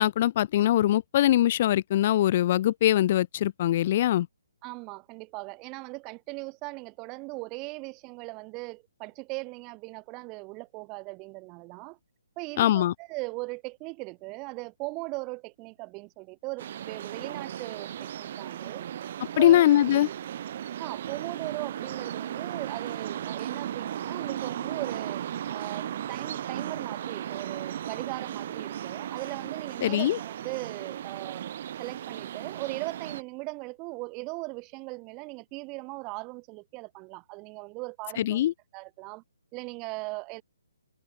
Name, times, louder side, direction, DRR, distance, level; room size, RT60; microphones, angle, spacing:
voice 1, 0.0-4.3 12.6-12.9 19.4-20.1 29.8-30.2 38.2-38.5, left 13 dB, 40° left, 0.4 m, -22 dB
voice 2, 4.6-12.0 12.4-18.9 19.4-19.6 20.8-25.2 25.5-31.4 31.8-38.4 38.7-39.2 39.5-40.4, right 27 dB, 25° right, 1.3 m, -39 dB
sound 1, 16.6-33.2, right 10 dB, 45° right, 2.1 m, -36 dB
hypercardioid pair, 150°, 0 cm